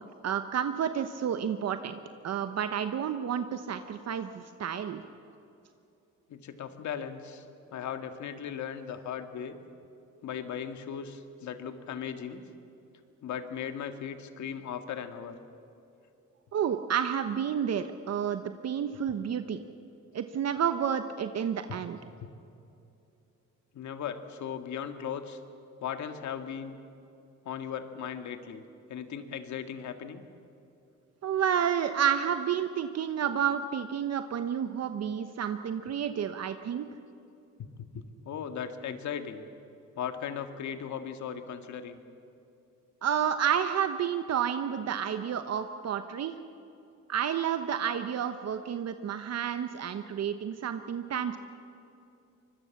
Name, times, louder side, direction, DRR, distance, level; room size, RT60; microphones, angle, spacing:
voice 1, 0.0-5.0 16.5-19.6 20.1-22.0 31.2-36.9 43.0-46.4 47.1-51.4, right 8 dB, 55° right, 9 dB, 1.0 m, -30 dB
voice 2, 6.3-7.4 7.7-9.6 10.2-12.4 13.2-15.4 21.7-21.8 22.2-22.3 23.7-25.4 25.8-26.8 27.5-28.6 28.9-30.2 37.6-39.5 40.0-42.0, left 8 dB, 70° left, 8 dB, 1.9 m, -37 dB
24.5 x 21.5 x 7.2 m, 2.7 s
cardioid pair, 90°, 30 cm